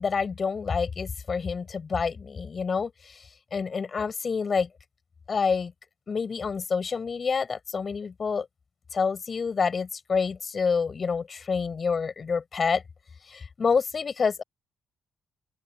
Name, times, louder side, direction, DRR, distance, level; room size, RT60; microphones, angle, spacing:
voice 1, 0.0-3.2 3.5-4.7 5.3-5.7 6.1-8.5 8.9-12.8 13.3-14.4, left 5 dB, 40° left, 6.5 m, -27 dB
open air
cardioid pair, 90°, 0 cm